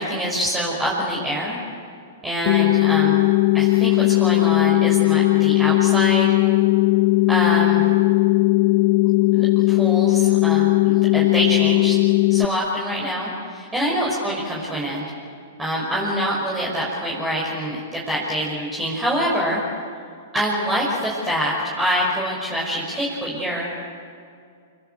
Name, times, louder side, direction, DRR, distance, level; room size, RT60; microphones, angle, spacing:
voice 1, 0.0-1.6 2.2-3.2 3.5-6.3 7.3-7.8 9.3-12.0 12.3-15.0 15.6-19.6 20.3-23.7, equal, 10° right, -5 dB, 6.3 m, -25 dB
sound 1, 2.5-12.5, left 20 dB, 50° left, 0.6 m, -17 dB
28.5 x 22.5 x 8.1 m, 2.3 s
hypercardioid pair, 115°, 0 cm